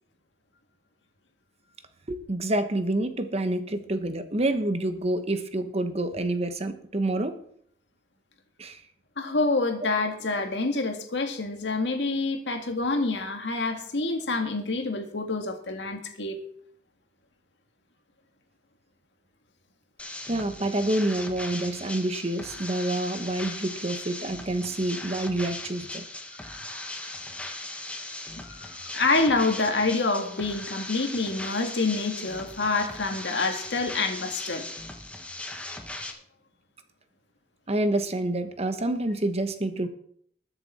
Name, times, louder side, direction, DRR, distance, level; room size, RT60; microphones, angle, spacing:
voice 1, 2.1-7.4 8.6-8.8 20.3-26.0 37.7-39.9, right 1 dB, 35° right, 9 dB, 1.2 m, -28 dB
voice 2, 9.2-16.4 26.4-26.5 28.4-34.7, left 3 dB, 90° left, 4 dB, 1.9 m, -27 dB
sound 1, 20.0-36.1, left 2 dB, 10° left, 1.3 m, -38 dB
20.5 x 7.0 x 4.3 m, 0.64 s
head